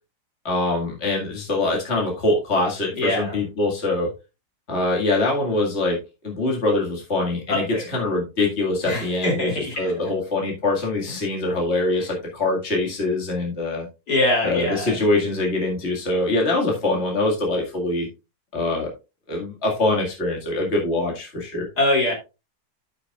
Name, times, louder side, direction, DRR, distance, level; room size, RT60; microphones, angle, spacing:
voice 1, 0.4-4.1 4.7-6.0 6.2-13.9 14.4-18.1 18.5-18.9 19.3-21.7, left 2 dB, 40° left, -1 dB, 2.3 m, -23 dB
voice 2, 2.9-3.4 7.5-7.9 8.9-9.9 14.1-14.9 21.8-22.1, left 1 dB, 75° left, 0 dB, 3.5 m, -23 dB
13.5 x 5.7 x 2.4 m, 0.27 s
omnidirectional pair, 1.7 m